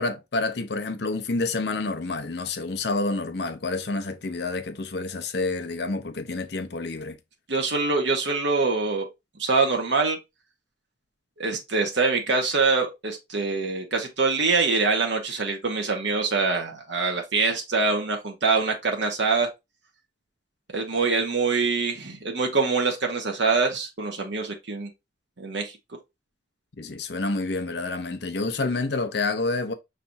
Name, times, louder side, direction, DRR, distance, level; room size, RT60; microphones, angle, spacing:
voice 1, 0.0-7.2 26.8-29.7, left 3 dB, 65° left, 0.7 m, -28 dB
voice 2, 7.5-9.1 9.4-10.2 11.4-19.5 20.7-24.9 25.4-25.7, right 4 dB, 75° right, 1.0 m, -24 dB
5.6 x 3.3 x 2.6 m
head